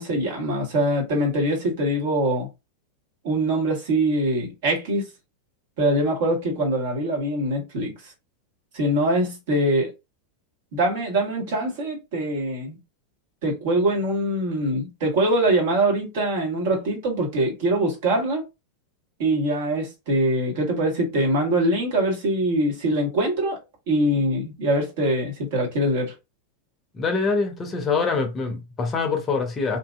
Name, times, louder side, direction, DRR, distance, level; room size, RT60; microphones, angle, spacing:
voice 1, 0.0-2.5 3.2-5.1 5.8-8.1 8.7-9.9 10.7-12.8 13.4-18.4 19.2-23.6 23.9-26.1, right 1 dB, 50° right, 1.4 m, -23 dB
voice 2, 26.9-29.8, left 4 dB, 20° left, 0.7 m, -24 dB
2.7 x 2.6 x 2.4 m
figure-of-eight pair, 90°, 0 cm